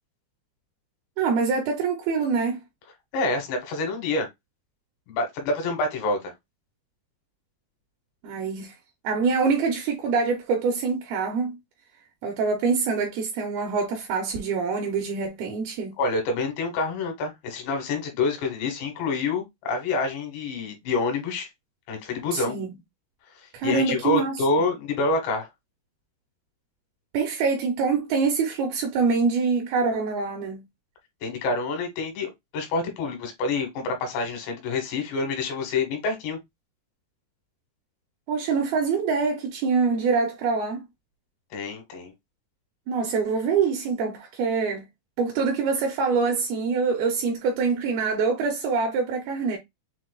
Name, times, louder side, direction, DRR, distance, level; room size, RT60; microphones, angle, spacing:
voice 1, 1.2-2.6 8.2-8.7 9.0-11.6 12.2-15.9 22.3-22.8 23.5-24.4 27.1-30.6 38.3-40.9 42.9-44.8 45.2-49.6, right 5 dB, 75° right, 2.5 m, -25 dB
voice 2, 3.1-4.3 5.1-6.3 16.0-21.5 21.9-22.6 23.6-25.5 31.2-36.4 41.5-42.1, left 3 dB, 90° left, 3.6 m, -27 dB
7.1 x 2.7 x 2.3 m
omnidirectional pair, 4.9 m